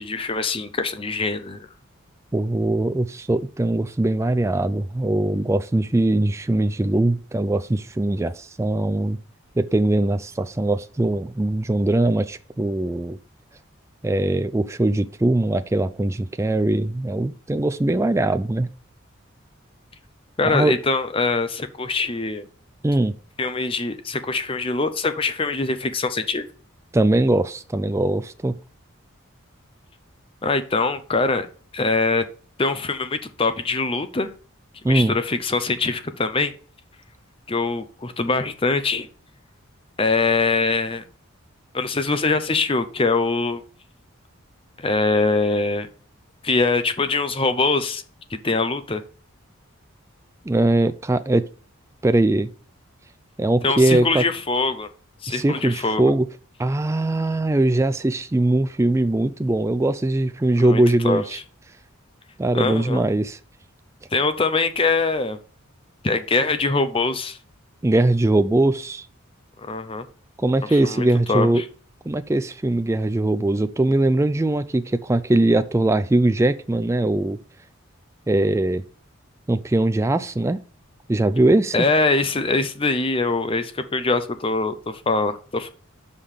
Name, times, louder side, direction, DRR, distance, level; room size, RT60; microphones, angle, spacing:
voice 1, 0.0-1.6 20.4-22.5 23.4-26.5 30.4-31.5 31.7-32.2 32.6-34.3 34.9-36.5 37.5-39.1 40.0-41.0 41.7-43.6 44.8-45.9 46.4-48.0 48.3-49.0 53.6-54.9 55.2-56.1 60.6-61.4 62.5-63.0 64.1-65.4 66.0-67.4 69.6-70.0 70.7-71.6 81.7-85.7, left 3 dB, 25° left, 0.6 m, -23 dB
voice 2, 2.3-9.2 9.6-13.2 14.0-18.7 20.4-20.8 22.8-23.1 26.9-28.6 34.8-35.1 50.4-51.4 52.0-52.5 53.4-54.2 55.3-56.3 56.6-61.4 62.4-63.4 67.8-69.1 70.4-71.6 72.1-77.4 78.3-78.8 79.5-80.6 81.1-81.8, right 2 dB, 15° right, 0.3 m, -21 dB
5.7 x 5.1 x 6.4 m
head